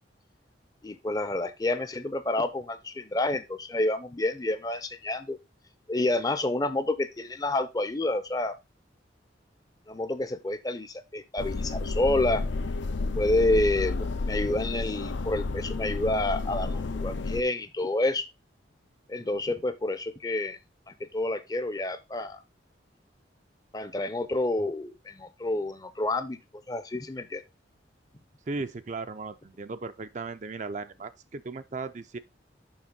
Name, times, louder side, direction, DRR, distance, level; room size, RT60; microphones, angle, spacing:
voice 1, 0.8-5.4 5.9-8.5 9.9-12.4 13.2-18.3 19.1-20.6 20.9-22.4 23.7-26.4 26.7-27.4, left 2 dB, 20° left, 0.6 m, -29 dB
sound 1, 11.4-17.4, left 3 dB, 75° left, 0.6 m, -31 dB
voice 2, 28.5-32.2, right 3 dB, 40° right, 0.5 m, -36 dB
7.1 x 5.8 x 3.8 m
head